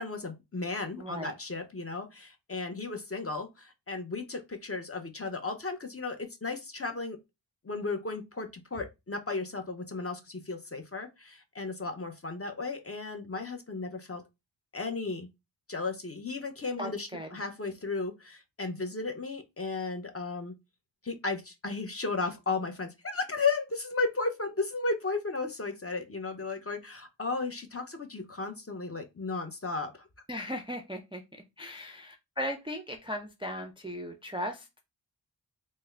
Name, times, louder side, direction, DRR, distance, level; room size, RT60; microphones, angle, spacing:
voice 1, 0.0-7.2 7.6-14.2 14.7-15.3 15.7-20.5 21.0-29.9 31.6-31.7, left 3 dB, 30° left, 0.6 m, -34 dB
voice 2, 1.0-1.3 16.8-17.3 30.3-31.2 31.6-34.8, equal, 15° right, 0.4 m, -37 dB
3.4 x 2.1 x 3.2 m
wide cardioid pair, 80°, 45 cm